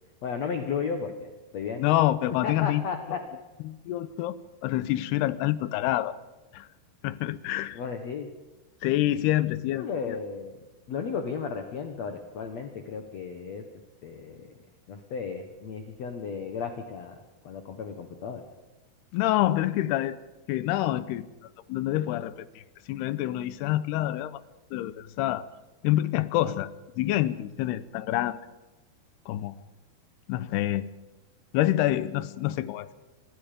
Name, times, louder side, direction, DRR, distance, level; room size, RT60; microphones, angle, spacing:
voice 1, 0.2-1.8 2.4-3.2 7.7-8.3 9.7-10.5 10.9-13.6 14.0-14.5 14.9-17.2 17.4-18.4, left 6 dB, 60° left, 6 dB, 2.0 m, -34 dB
voice 2, 1.8-2.8 3.6-6.1 6.5-6.7 7.0-7.8 8.8-10.2 19.1-20.2 20.5-21.2 21.7-22.6 22.9-24.4 24.7-25.5 25.8-28.4 29.3-29.6 30.3-30.9 31.5-32.9, left 14 dB, 85° left, 16 dB, 2.9 m, -27 dB
25.5 x 21.0 x 5.2 m, 1.1 s
omnidirectional pair, 4.6 m